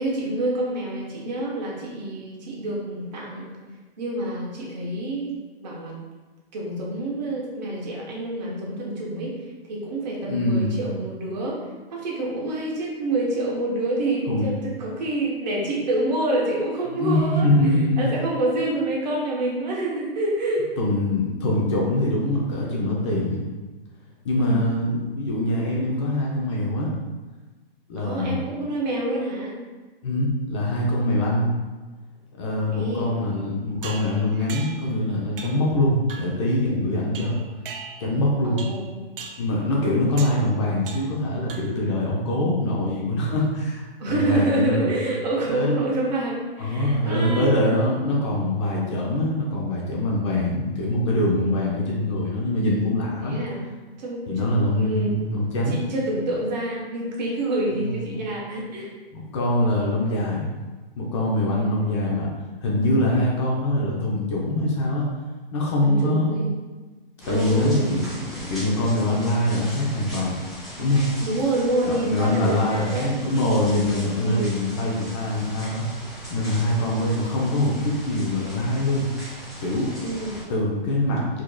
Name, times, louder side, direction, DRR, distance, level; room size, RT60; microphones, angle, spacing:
voice 1, 0.0-3.5 4.0-5.3 5.6-6.0 6.5-11.6 11.9-20.6 24.3-24.7 28.0-29.6 32.7-33.2 37.3-37.4 38.4-38.9 44.0-47.6 51.4-51.7 53.2-53.7 54.0-55.2 55.7-58.9 61.6-61.8 65.8-66.5 67.3-67.9 71.2-73.2 74.1-74.5 80.0-80.4, right 2 dB, 45° right, -3 dB, 1.0 m, -27 dB
voice 2, 10.3-10.8 14.3-14.5 16.9-18.1 20.8-23.4 24.2-26.9 27.9-28.4 30.0-31.5 32.4-37.4 38.0-38.6 39.4-44.9 45.5-45.8 46.6-53.4 54.3-55.8 57.8-58.2 59.1-60.5 61.0-62.3 62.6-65.0 65.5-66.3 67.3-68.0 68.5-70.4 70.8-71.0 71.8-75.8 76.3-79.1 79.6-79.9 80.5-81.4, left 1 dB, 30° left, -3 dB, 0.6 m, -23 dB
sound 1, 33.8-34.9 35.4-35.7 36.1-36.4 37.1-38.2 38.6-38.9 39.2-39.5 40.2-40.5 40.9-41.2 41.5-41.9, right 5 dB, 65° right, 0.5 m, -39 dB
sound 2, 67.2-80.4, equal, ahead, 0.9 m, -39 dB
4.8 x 2.8 x 2.2 m, 1.2 s
hypercardioid pair, 145°, 30 cm